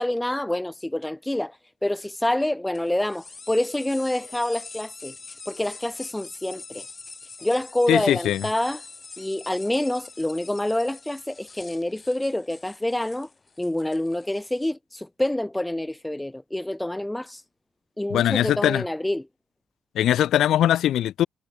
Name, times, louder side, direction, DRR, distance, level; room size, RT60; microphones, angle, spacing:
voice 1, 0.0-5.1 5.5-6.9 7.4-8.8 9.2-13.3 13.6-17.4 18.0-19.2, left 1 dB, 10° left, 0.4 m, -27 dB
sound 1, 2.7-14.7, left 4 dB, 30° left, 6.8 m, -44 dB
voice 2, 7.9-8.4 18.1-18.8 20.0-21.3, left 11 dB, 75° left, 0.7 m, -21 dB
cardioid pair, 90°, 0 cm